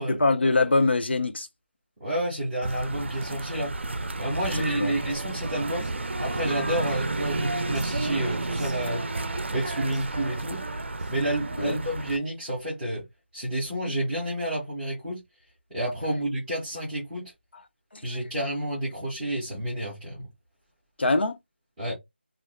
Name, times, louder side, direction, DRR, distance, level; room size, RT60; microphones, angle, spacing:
voice 1, 0.1-1.5 4.7-4.9 11.6-11.8 17.9-18.2 21.0-21.4, left 3 dB, 70° left, 0.6 m, -23 dB
voice 2, 2.0-3.7 4.2-9.0 9.5-10.6 11.1-13.0 13.3-15.2 15.7-17.3 18.0-20.3 21.8-22.0, right 1 dB, 5° right, 0.6 m, -30 dB
sound 1, 2.6-12.2, right 2 dB, 85° right, 0.4 m, -32 dB
Female singing, 4.4-11.8, right 1 dB, 35° right, 0.7 m, -38 dB
2.4 x 2.2 x 3.2 m
figure-of-eight pair, 180°, 6 cm